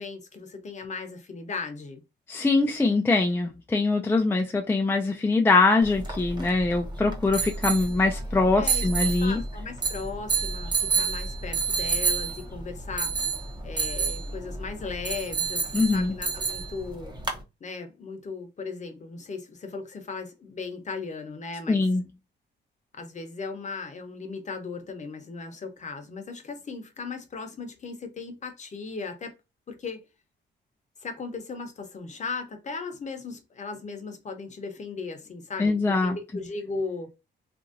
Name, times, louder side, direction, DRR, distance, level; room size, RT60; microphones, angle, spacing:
voice 1, 0.0-2.0 8.6-13.1 13.6-17.2 17.6-21.8 22.9-29.3 29.7-30.0 31.0-37.1, left 4 dB, 35° left, 0.8 m, -37 dB
voice 2, 2.3-9.4 15.7-16.1 21.7-22.0 35.6-36.2, left 3 dB, 10° left, 0.4 m, -23 dB
sound 1, 5.8-17.4, right 5 dB, 20° right, 0.8 m, -30 dB
2.9 x 2.6 x 2.5 m
cardioid pair, 90°, 20 cm